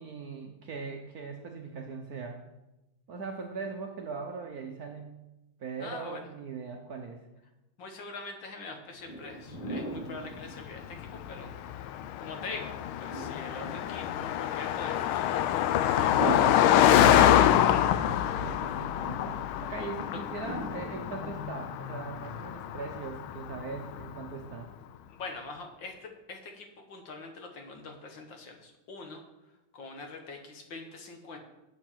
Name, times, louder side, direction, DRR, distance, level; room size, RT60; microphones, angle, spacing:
voice 1, 0.0-2.4 3.1-5.2 5.6-7.2 18.0-24.7, right 5 dB, 60° right, 2 dB, 1.0 m, -40 dB
voice 2, 5.8-6.3 7.8-11.9 12.2-12.7 13.0-16.7 17.7-17.9 19.8-19.9 25.1-29.2 29.7-31.4, left 3 dB, 65° left, 4 dB, 1.7 m, -43 dB
sound 1, 9.1-11.4 13.1-14.3 16.1-17.4 20.4-21.9, right 1 dB, 20° left, 1.3 m, -38 dB
Car passing by, 10.4-24.1, left 11 dB, 80° left, 1.4 m, -26 dB
7.7 x 6.8 x 5.9 m, 0.97 s
omnidirectional pair, 2.3 m